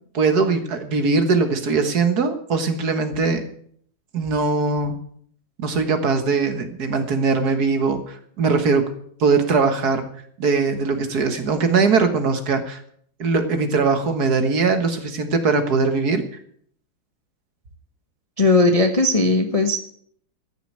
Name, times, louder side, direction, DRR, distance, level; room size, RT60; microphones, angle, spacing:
voice 1, 0.1-3.4 4.1-5.0 5.6-8.9 9.2-10.0 10.4-12.8 13.2-16.3, right 4 dB, 50° right, 8 dB, 1.8 m, -21 dB
voice 2, 18.4-19.8, left 2 dB, 25° left, 5 dB, 0.8 m, -17 dB
14.5 x 6.8 x 8.8 m, 0.62 s
omnidirectional pair, 2.2 m